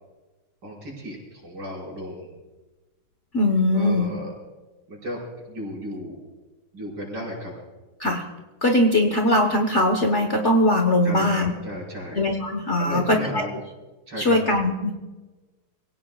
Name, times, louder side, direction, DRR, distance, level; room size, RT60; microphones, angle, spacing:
voice 1, 0.6-2.3 3.7-4.3 4.9-5.2 5.5-6.2 6.7-7.5 11.0-12.2 12.8-13.5 14.1-14.4, equal, 60° right, -3 dB, 5.8 m, -34 dB
voice 2, 3.3-4.1 8.0-8.2 8.6-11.5 12.1-13.4 14.2-14.9, left 1 dB, 40° left, 3 dB, 1.3 m, -21 dB
25.5 x 17.0 x 2.4 m, 1.2 s
omnidirectional pair, 2.3 m